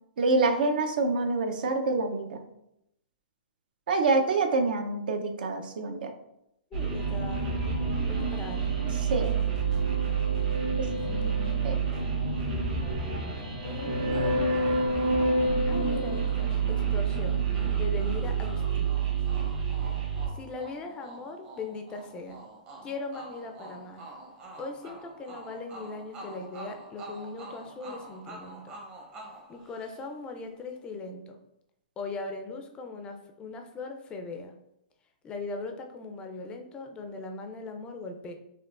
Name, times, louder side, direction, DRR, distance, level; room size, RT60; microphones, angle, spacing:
voice 1, 0.2-2.4 3.9-6.1 9.1-9.4 10.8-10.9 11.6-11.8, right 3 dB, 70° right, 5 dB, 0.5 m, -26 dB
voice 2, 6.7-7.5 8.1-8.8 11.0-11.5 13.4-14.4 15.7-17.4 17.7-19.0 20.3-22.4 22.8-24.0 24.6-28.7 29.5-31.4 32.0-34.5 35.2-38.3, left 3 dB, 20° left, 5 dB, 0.4 m, -39 dB
sound 1, 6.7-20.3, right 4 dB, 50° right, 1.4 m, -28 dB
sound 2, 14.1-30.3, right 2 dB, 25° right, 0.7 m, -47 dB
4.4 x 2.5 x 2.4 m, 0.81 s
hypercardioid pair, 145°, 5 cm